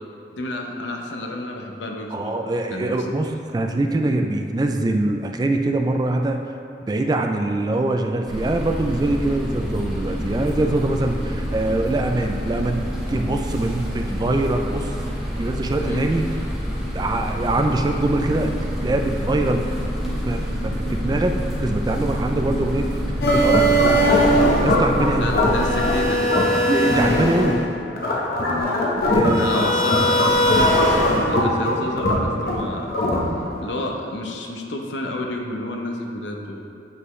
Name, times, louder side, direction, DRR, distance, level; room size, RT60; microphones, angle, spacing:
voice 1, 0.3-2.4 2.7-2.9 15.8-16.1 25.2-26.4 28.5-33.0 33.6-36.7, left 1 dB, 90° left, 2 dB, 0.8 m, -30 dB
voice 2, 2.1-6.4 6.9-14.9 15.3-16.3 16.9-18.5 18.8-19.7 20.3-21.4 21.6-22.9 23.3-23.8 24.6-25.4 26.7-27.6 29.1-29.6 30.2-30.4, right 2 dB, 20° right, 4 dB, 0.3 m, -23 dB
sound 1, 8.3-26.0, equal, 5° right, 0.9 m, -27 dB
sound 2, 23.2-33.6, equal, 55° left, 1.0 m, -19 dB
7.9 x 5.4 x 3.1 m, 2.7 s
head